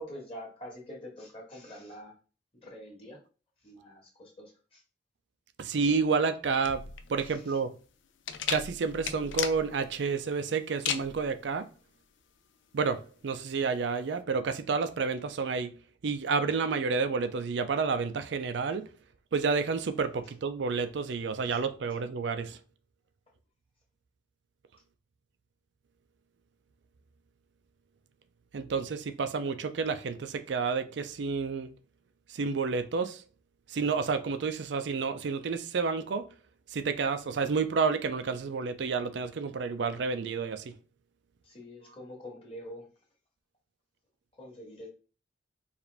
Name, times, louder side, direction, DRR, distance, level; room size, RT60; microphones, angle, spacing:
voice 1, 0.0-2.1 2.6-3.2 3.6-4.8 7.2-7.6 21.5-21.6 41.4-42.9 44.4-44.9, equal, 30° left, 1.6 m, -45 dB
voice 2, 5.6-6.8 7.1-7.7 8.5-11.7 12.7-15.8 16.0-18.9 19.3-22.6 28.5-31.7 32.3-33.2 33.7-36.3 36.7-40.7, right 5 dB, 65° right, 0.4 m, -30 dB
sound 1, 6.6-14.2, left 8 dB, 80° left, 0.5 m, -37 dB
4.8 x 2.6 x 3.3 m
head